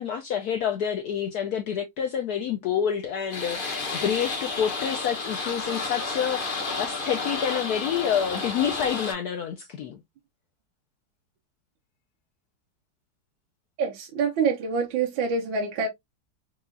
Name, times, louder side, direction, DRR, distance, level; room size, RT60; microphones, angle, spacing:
voice 1, 0.0-10.0, left 8 dB, 70° left, 0.9 m, -28 dB
sound 1, 3.3-9.1, left 3 dB, 40° left, 0.7 m, -31 dB
voice 2, 13.8-15.9, right 5 dB, 80° right, 1.5 m, -26 dB
4.7 x 2.3 x 2.5 m
omnidirectional pair, 2.1 m